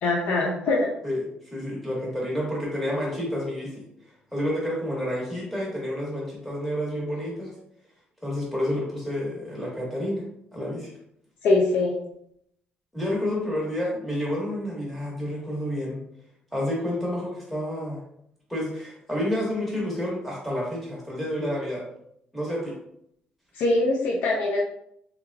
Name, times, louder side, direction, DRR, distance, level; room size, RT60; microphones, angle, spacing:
voice 1, 0.0-0.9 11.4-12.0 23.5-24.6, left 2 dB, 80° left, -1 dB, 0.5 m, -22 dB
voice 2, 1.0-3.7 4.3-7.5 8.2-10.2 10.5-10.9 12.9-16.0 16.5-18.0 18.5-21.8 22.3-22.7, left 1 dB, ahead, -4 dB, 1.2 m, -29 dB
3.5 x 3.2 x 2.3 m, 0.72 s
cardioid pair, 160°, 3 cm